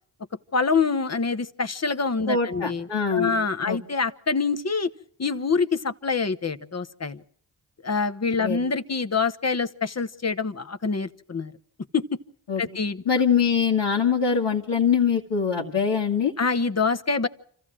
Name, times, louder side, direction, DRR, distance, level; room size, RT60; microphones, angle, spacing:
voice 1, 0.5-4.9 5.2-7.2 7.8-11.5 11.9-12.0 12.6-13.0 16.4-17.3, left 4 dB, 35° left, 11 dB, 1.1 m, -25 dB
voice 2, 2.3-3.4 3.7-3.8 8.4-8.6 12.5-12.6 13.1-16.3, left 6 dB, 70° left, -4 dB, 2.0 m, -23 dB
26.5 x 14.5 x 7.5 m, 0.63 s
supercardioid pair, 45°, 45 cm